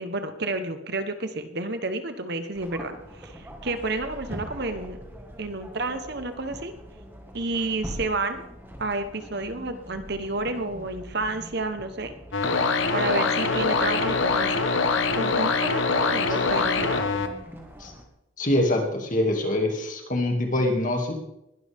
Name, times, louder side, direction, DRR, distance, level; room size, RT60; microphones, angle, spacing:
voice 1, 0.0-5.0 5.4-6.7 7.3-8.5 8.8-12.1 12.9-14.6 15.2-17.0, right 2 dB, 50° right, 8 dB, 1.1 m, -30 dB
sound 1, 2.5-18.0, equal, 10° right, 1.8 m, -43 dB
sound 2, 12.3-17.3, left 4 dB, 70° left, 1.2 m, -24 dB
voice 2, 18.4-21.1, left 1 dB, 40° left, 2 dB, 2.4 m, -24 dB
20.5 x 12.0 x 3.6 m, 0.87 s
head